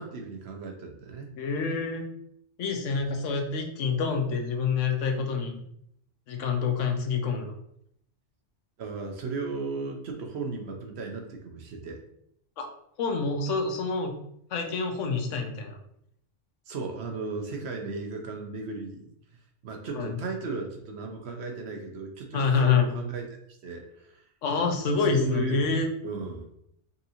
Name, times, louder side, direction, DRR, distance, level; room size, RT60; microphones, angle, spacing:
voice 1, 0.0-1.3 8.8-12.0 16.7-19.1 19.6-23.3 23.6-24.2 25.1-25.7 26.0-26.5, right 3 dB, 65° right, 3 dB, 0.9 m, -35 dB
voice 2, 1.4-2.1 2.6-5.6 6.3-7.6 12.6-12.7 13.0-14.1 14.5-15.8 19.9-20.2 22.3-22.9 24.4-25.9, left 5 dB, 80° left, 4 dB, 1.0 m, -27 dB
5.4 x 2.6 x 2.8 m, 0.72 s
omnidirectional pair, 1.3 m